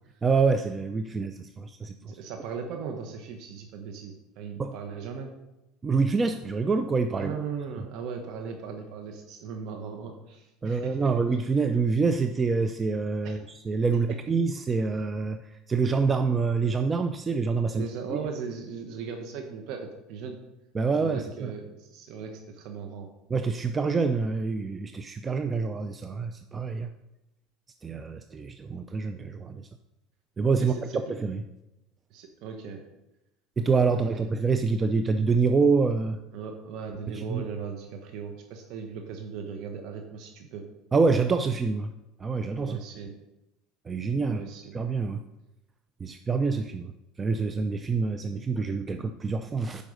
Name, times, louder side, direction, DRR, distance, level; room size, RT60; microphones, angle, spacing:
voice 1, 0.2-2.2 4.6-4.8 5.8-7.3 10.6-18.2 20.7-21.5 23.3-26.9 27.8-29.7 30.4-31.4 33.6-36.2 37.1-37.4 40.9-41.9 42.2-42.8 43.9-45.2 46.0-46.9 47.2-49.8, right 4 dB, 25° right, 8 dB, 0.5 m, -26 dB
voice 2, 2.0-5.3 7.1-11.1 13.2-13.4 17.7-20.4 21.0-23.1 30.6-31.0 32.1-32.8 33.9-34.1 36.3-40.6 42.6-43.1 44.2-44.8, right 6 dB, 60° right, 4 dB, 1.2 m, -38 dB
8.9 x 5.3 x 6.4 m, 0.96 s
supercardioid pair, 105°, 0 cm